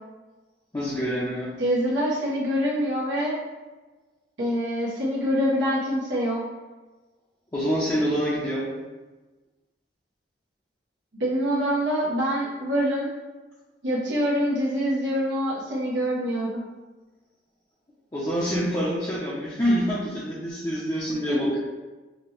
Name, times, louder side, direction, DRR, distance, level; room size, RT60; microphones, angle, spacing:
voice 1, 0.7-1.5 7.5-8.7 18.1-21.6, equal, 20° left, -8 dB, 0.5 m, -26 dB
voice 2, 1.6-3.4 4.4-6.4 11.1-13.1 13.8-16.6 21.3-21.4, equal, 85° right, -6 dB, 0.8 m, -25 dB
4.9 x 2.1 x 3.1 m, 1.2 s
head